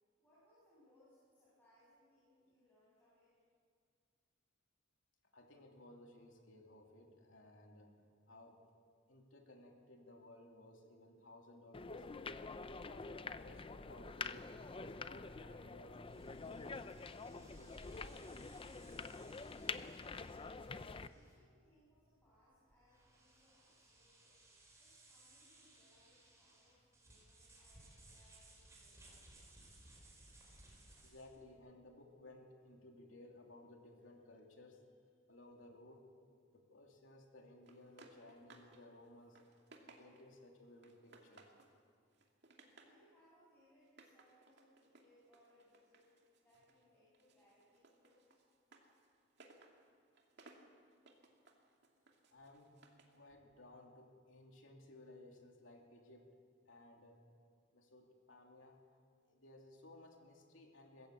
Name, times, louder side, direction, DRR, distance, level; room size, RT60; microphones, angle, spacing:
voice 1, 0.2-3.3 20.8-24.4 24.8-29.4 42.7-46.1 46.4-48.4, equal, 10° left, -10 dB, 7.5 m, -71 dB
voice 2, 5.3-7.9 8.3-8.6 9.1-12.4 12.8-16.0 16.3-18.2 19.7-19.9 31.0-34.8 35.3-36.0 36.5-39.4 40.0-41.5 52.3-52.8 53.1-56.4 56.6-57.2 57.7-58.8 59.2-61.1, left 1 dB, 90° left, 1 dB, 2.9 m, -59 dB
sound 1, 11.7-21.1, left 4 dB, 30° left, 0.6 m, -47 dB
sound 2, 16.0-31.4, right 2 dB, 15° right, 4.6 m, -64 dB
sound 3, 37.7-38.8 39.1-40.4 40.8-41.8 42.1-43.0 43.8-46.8 47.1-53.2, right 3 dB, 60° right, 2.4 m, -64 dB
21.0 x 14.5 x 8.4 m, 2.1 s
head